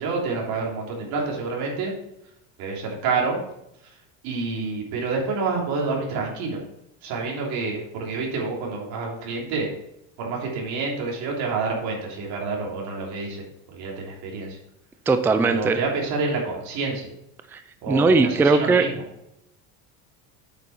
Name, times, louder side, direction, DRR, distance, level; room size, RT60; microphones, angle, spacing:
voice 1, 0.0-1.9 2.6-3.4 4.2-6.6 7.0-9.7 10.2-13.4 13.7-14.6 15.4-17.0 17.8-18.9, right 4 dB, 70° right, -2 dB, 3.3 m, -28 dB
voice 2, 15.1-15.8 17.5-17.6 17.9-18.8, right 3 dB, 5° right, 8 dB, 0.4 m, -19 dB
8.6 x 6.8 x 4.4 m, 0.81 s
cardioid pair, 145°, 38 cm